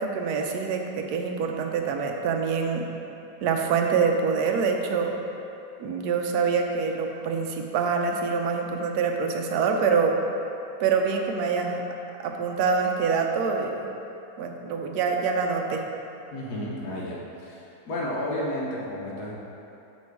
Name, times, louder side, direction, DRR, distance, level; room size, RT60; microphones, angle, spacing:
voice 1, 0.0-2.8 3.4-5.1 5.8-10.2 10.8-11.8 12.2-13.9 14.4-15.9, right 5 dB, 70° right, 3 dB, 1.0 m, -25 dB
voice 2, 16.3-19.3, left 1 dB, 65° left, -4 dB, 1.4 m, -32 dB
5.2 x 4.5 x 4.6 m, 2.8 s
omnidirectional pair, 1.9 m